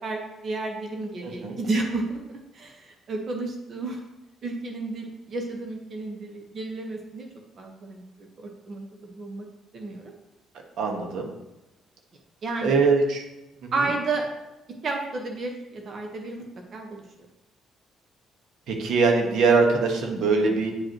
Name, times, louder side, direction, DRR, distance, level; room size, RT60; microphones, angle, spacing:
voice 1, 0.0-4.0 4.4-7.3 7.6-9.4 9.7-10.1 12.4-12.7 13.7-14.3 14.8-16.5 16.7-17.0, right 3 dB, 55° right, 2 dB, 1.2 m, -32 dB
voice 2, 1.2-1.5 10.8-11.3 12.6-13.2 13.6-13.7 18.7-20.7, right 4 dB, 75° right, 2 dB, 1.4 m, -22 dB
9.3 x 5.3 x 3.0 m, 0.97 s
cardioid pair, 80°, 0 cm